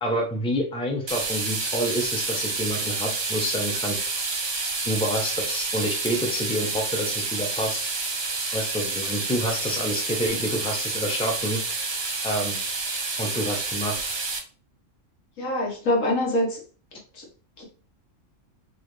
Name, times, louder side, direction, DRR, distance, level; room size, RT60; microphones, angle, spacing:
voice 1, 0.0-4.0 4.8-7.8 8.5-11.6 12.2-12.6 13.2-14.0, equal, 5° left, 1 dB, 0.6 m, -28 dB
sound 1, 1.1-14.4, right 3 dB, 40° right, 0.3 m, -29 dB
voice 2, 15.4-16.6 17.1-17.2 17.6-17.7, left 1 dB, 80° left, -1 dB, 1.6 m, -24 dB
4.1 x 2.7 x 3.2 m, 0.39 s
omnidirectional pair, 1.3 m